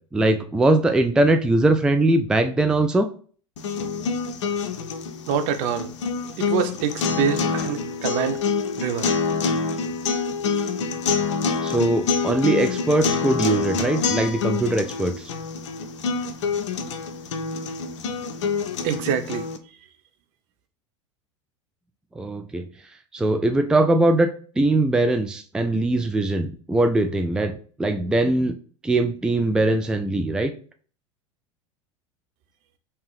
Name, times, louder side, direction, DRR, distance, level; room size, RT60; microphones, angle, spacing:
voice 1, 0.1-3.1 11.6-15.3 22.2-22.7 23.1-24.3 24.6-27.5 27.8-28.6 28.8-30.5, right 2 dB, 5° right, 0.4 m, -21 dB
sound 1, 3.6-19.6, left 5 dB, 65° left, 0.5 m, -26 dB
voice 2, 5.3-5.9 6.4-8.4 8.8-9.1 18.8-19.5, right 7 dB, 50° right, 0.7 m, -25 dB
3.6 x 2.9 x 4.7 m
figure-of-eight pair, 80°, 16 cm